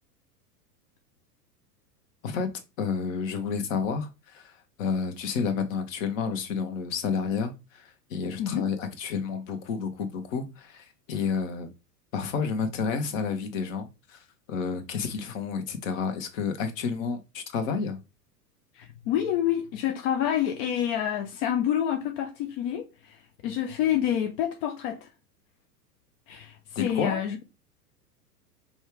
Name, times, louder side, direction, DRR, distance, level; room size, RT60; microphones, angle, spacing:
voice 1, 2.2-4.5 4.8-11.7 12.1-18.0 26.7-27.2, left 5 dB, 50° left, 1.1 m, -30 dB
voice 2, 18.8-22.8 23.4-25.1 26.3-27.4, left 10 dB, 35° left, 0.5 m, -27 dB
5.3 x 2.3 x 3.2 m
hypercardioid pair, 100°, 48 cm